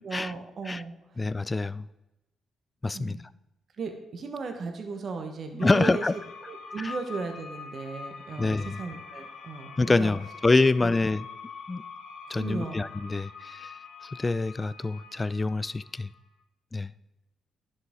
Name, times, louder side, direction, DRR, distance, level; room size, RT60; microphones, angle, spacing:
voice 1, 0.0-0.9 2.9-3.2 3.8-6.0 6.5-10.1 10.7-10.9 12.3-12.9, right 4 dB, 55° right, 1.1 m, -36 dB
voice 2, 1.2-1.9 2.8-3.2 5.5-6.1 6.8-6.9 8.4-8.8 9.8-11.3 11.7-11.8 12.3-13.7 14.0-16.1 16.7-16.9, left 3 dB, 25° left, 0.3 m, -26 dB
sound 1, 5.6-16.3, left 5 dB, 75° left, 0.9 m, -44 dB
10.5 x 6.4 x 3.7 m
supercardioid pair, 55°, 0 cm